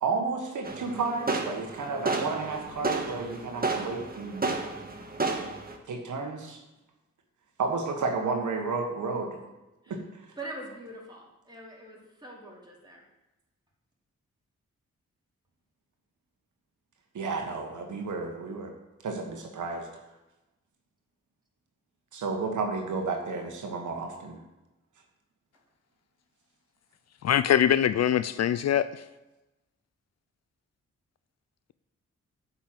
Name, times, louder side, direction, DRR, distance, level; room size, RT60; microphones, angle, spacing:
voice 1, 0.0-4.4 5.9-6.6 7.6-9.4 9.9-10.0 17.1-18.7 19.0-19.9 22.1-24.4, right 4 dB, 75° right, 3 dB, 1.5 m, -32 dB
sound 1, 0.6-5.8, right 3 dB, 30° right, 1.7 m, -32 dB
voice 2, 10.4-13.0, right 1 dB, 15° right, -4 dB, 4.2 m, -43 dB
voice 3, 27.2-29.0, left 10 dB, 60° left, 14 dB, 0.5 m, -23 dB
8.5 x 5.7 x 7.6 m, 1.0 s
supercardioid pair, 45°, 30 cm